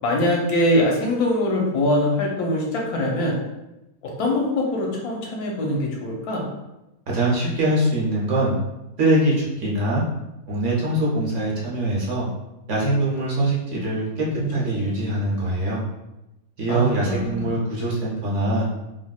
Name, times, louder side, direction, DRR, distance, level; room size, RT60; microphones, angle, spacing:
voice 1, 0.0-3.4 4.0-6.4 13.2-13.5 14.3-14.5 14.7-15.0 16.7-17.5, left 1 dB, 85° left, -1 dB, 1.2 m, -23 dB
voice 2, 7.1-8.5 9.0-10.0 10.5-12.3 12.7-15.8 16.6-18.7, right 1 dB, 60° right, -5 dB, 1.0 m, -23 dB
3.4 x 2.5 x 2.2 m, 0.96 s
omnidirectional pair, 1.6 m